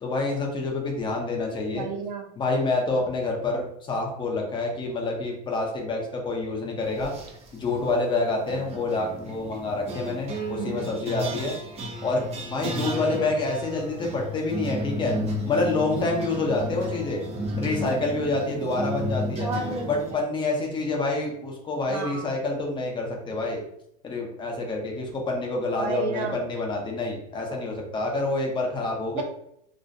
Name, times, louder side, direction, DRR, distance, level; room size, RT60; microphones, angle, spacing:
voice 1, 0.0-1.8 2.4-7.1 7.5-11.6 12.0-15.1 15.4-17.2 17.6-19.5 19.8-23.6 24.0-29.2, left 3 dB, 25° left, 0 dB, 0.6 m, -27 dB
voice 2, 1.7-2.3 10.6-11.0 19.4-20.2 21.9-22.2 25.8-26.4 29.1-29.2, right 4 dB, 75° right, 3 dB, 0.6 m, -32 dB
sound 1, 6.9-7.5 8.5-20.1, equal, 30° right, 0.5 m, -33 dB
2.5 x 2.0 x 2.5 m, 0.74 s
supercardioid pair, 130°, 21 cm